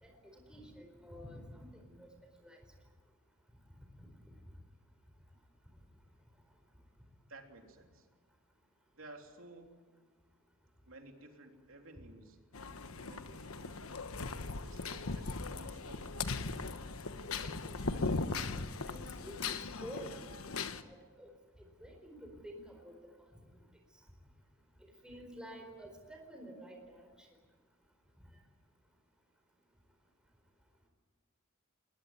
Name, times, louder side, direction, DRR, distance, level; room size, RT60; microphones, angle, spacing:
voice 1, 0.0-2.1 2.4-2.6 17.4-18.0 18.8-19.4 19.8-20.2 20.7-21.3 21.6-22.9 24.8-27.3, equal, 5° right, 2 dB, 4.4 m, -50 dB
voice 2, 7.3-8.1 8.9-9.8 10.8-12.4 12.9-13.9 14.6-16.4, right 2 dB, 65° right, 3 dB, 3.4 m, -55 dB
sound 1, 12.5-20.8, left 3 dB, 85° left, 1.2 m, -39 dB
21.0 x 20.5 x 9.6 m, 1.4 s
head